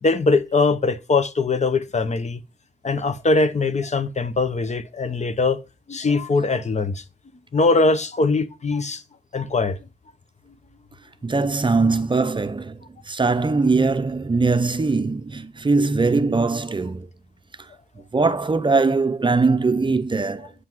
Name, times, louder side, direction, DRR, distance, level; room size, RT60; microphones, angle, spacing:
voice 1, 0.0-2.4 2.8-5.6 5.9-7.0 7.5-9.0 9.3-9.8, left 3 dB, 45° left, 0.8 m, -21 dB
voice 2, 11.2-12.8 13.1-17.1 18.1-20.5, right 3 dB, 30° right, 0.6 m, -21 dB
8.1 x 5.7 x 3.0 m
cardioid pair, 80°, 17 cm